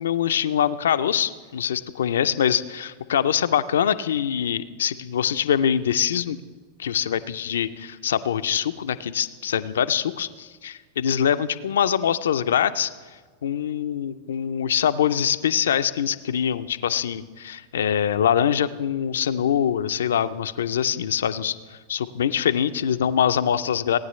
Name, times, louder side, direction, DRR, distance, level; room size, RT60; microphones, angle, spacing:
voice 1, 0.0-6.4 6.8-12.9 13.4-24.0, left 9 dB, 80° left, 12 dB, 0.4 m, -24 dB
18.0 x 9.4 x 3.2 m, 1.4 s
hypercardioid pair, 100°, 0 cm